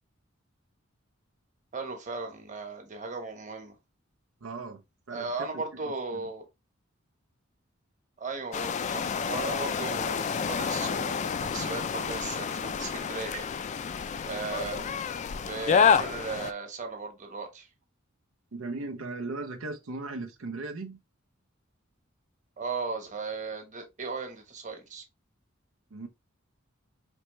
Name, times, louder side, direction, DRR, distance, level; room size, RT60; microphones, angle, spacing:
voice 1, 1.7-3.7 5.1-6.4 8.2-13.4 14.3-14.8 15.5-17.7 22.6-25.0, right 4 dB, 40° right, 1.2 m, -36 dB
voice 2, 4.4-6.3 14.7-14.9 18.5-21.0 25.9-26.1, right 3 dB, 85° right, 0.6 m, -38 dB
sound 1, 8.5-16.5, left 6 dB, 35° left, 0.3 m, -29 dB
4.4 x 3.0 x 3.1 m
head